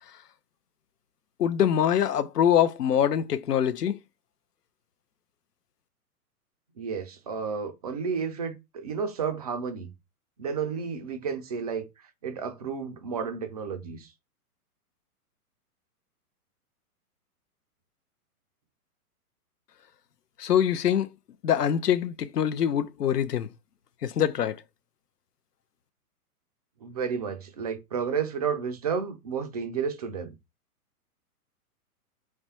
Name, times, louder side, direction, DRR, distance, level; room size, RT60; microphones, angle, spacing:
voice 1, 1.4-4.0 20.4-21.1 21.4-23.5 24.0-24.6, left 9 dB, 85° left, 0.6 m, -24 dB
voice 2, 6.8-9.9 10.4-11.9 12.2-14.1 26.8-30.4, right 6 dB, 30° right, 0.3 m, -31 dB
3.2 x 2.5 x 4.1 m
figure-of-eight pair, 115°, 46 cm